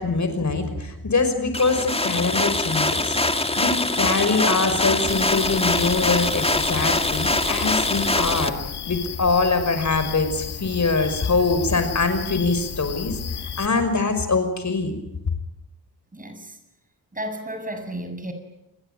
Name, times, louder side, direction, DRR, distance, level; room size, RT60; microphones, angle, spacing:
voice 1, 0.0-8.6 8.8-14.9, left 3 dB, 45° left, 9 dB, 5.6 m, -23 dB
sound 1, 1.5-8.5, left 2 dB, 15° left, 2.2 m, -23 dB
sound 2, 5.1-13.7, left 8 dB, 85° left, 2.6 m, -34 dB
voice 2, 16.1-16.6 17.1-18.3, right 1 dB, 20° right, 7 dB, 7.6 m, -33 dB
29.0 x 22.0 x 9.2 m, 0.87 s
cardioid pair, 75°, 39 cm